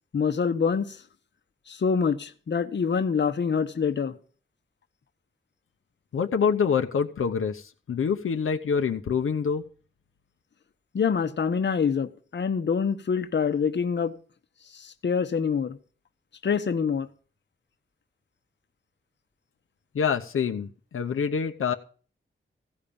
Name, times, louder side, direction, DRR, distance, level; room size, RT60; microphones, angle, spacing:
voice 1, 0.1-1.0 1.7-4.1 10.9-14.1 14.7-15.8 16.4-17.1, left 6 dB, 55° left, 1.0 m, -26 dB
voice 2, 6.1-9.7 19.9-21.7, left 6 dB, 80° left, 0.9 m, -26 dB
15.5 x 5.3 x 8.7 m
wide cardioid pair, 130°, 21 cm